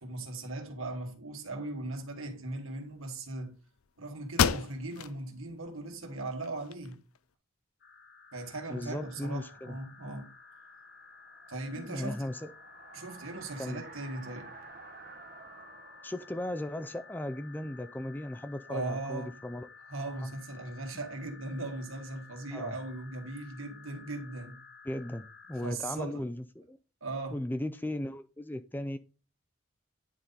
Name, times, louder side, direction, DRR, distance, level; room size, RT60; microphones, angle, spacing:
voice 1, 0.0-3.6 4.0-7.0 8.3-10.3 11.5-12.3 12.9-14.5 18.7-19.4 19.9-24.6 25.6-26.2 27.0-27.4, right 2 dB, 75° right, 1.9 m, -38 dB
sound 1, 3.8-3.9 4.3-5.2 5.6-5.7 6.3-7.2, left 7 dB, 90° left, 0.5 m, -30 dB
sound 2, 7.8-25.7, left 5 dB, 50° left, 1.3 m, -54 dB
voice 2, 8.7-9.8 11.8-12.5 13.6-13.8 16.0-19.7 20.2-20.3 22.5-22.8 24.8-26.8 27.3-29.0, left 1 dB, 10° left, 0.4 m, -37 dB
sound 3, 9.7-18.4, right 4 dB, 45° right, 0.9 m, -53 dB
10.0 x 4.2 x 3.9 m
head